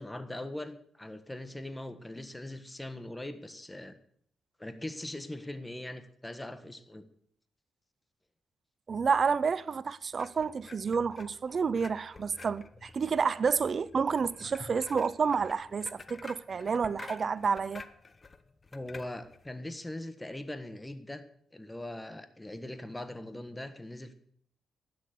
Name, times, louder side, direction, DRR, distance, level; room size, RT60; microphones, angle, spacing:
voice 1, 0.0-4.0 4.6-7.1 18.7-21.2 21.5-24.1, left 1 dB, 10° left, 1.4 m, -41 dB
voice 2, 8.9-17.8, right 5 dB, 50° right, 0.6 m, -29 dB
sound 1, 10.1-19.5, left 3 dB, 35° left, 1.0 m, -50 dB
12.0 x 9.5 x 6.6 m
cardioid pair, 75°, 0 cm